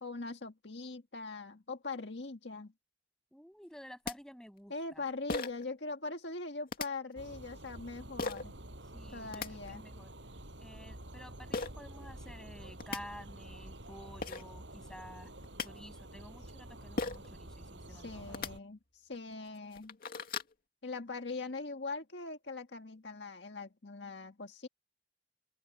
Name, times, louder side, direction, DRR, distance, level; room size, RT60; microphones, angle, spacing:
voice 1, 0.0-2.7 4.7-8.5 9.1-9.8 17.9-20.0 20.8-24.7, left 3 dB, 70° left, 1.7 m, -42 dB
voice 2, 3.3-5.0 8.9-10.1 10.6-15.3 15.6-18.4, equal, 5° left, 7.6 m, -51 dB
sound 1, 3.7-3.8 4.1-4.2 5.3-5.7 6.7-6.9 8.2-8.4 9.1-9.5 11.5-11.7 12.5-12.6 12.8-13.0 13.9-14.0 14.2-14.4 15.3-15.7 17.0-17.3 18.2-18.5 19.1-19.2 19.6-20.5, left 3 dB, 55° left, 2.4 m, -36 dB
sound 2, 7.2-18.6, right 1 dB, 90° right, 6.5 m, -49 dB
open air
head